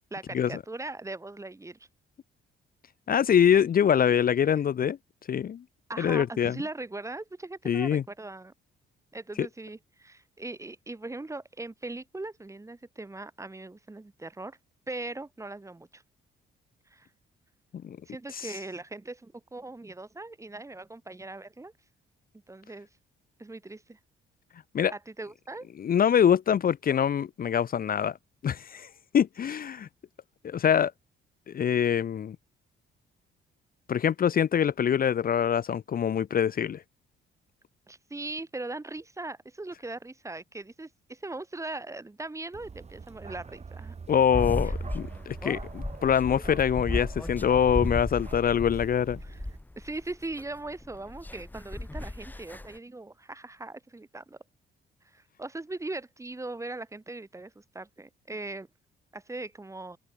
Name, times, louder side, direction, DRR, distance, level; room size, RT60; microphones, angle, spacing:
voice 1, 0.1-1.8 4.8-4.9 5.9-8.5 9.1-14.6 14.9-16.0 16.9-17.1 18.1-21.7 22.5-22.9 23.4-24.0 24.9-25.7 37.9-43.9 44.6-44.7 49.2-49.4 49.8-54.4 55.1-58.7 59.1-60.0, right 2 dB, 15° right, 1.6 m, -40 dB
voice 2, 3.1-5.0 5.3-5.6 6.0-6.6 7.7-8.0 9.4-9.5 17.8-18.0 18.3-18.5 24.7-24.9 25.8-28.2 28.4-28.9 29.1-29.9 30.4-30.9 31.5-32.4 33.9-36.8 44.1-49.2, left 8 dB, 45° left, 0.8 m, -24 dB
Bark, 42.5-49.6, right 5 dB, 35° right, 2.2 m, -44 dB
sound 1, 44.3-52.8, left 2 dB, 10° left, 1.0 m, -35 dB
open air
cardioid pair, 90°, 20 cm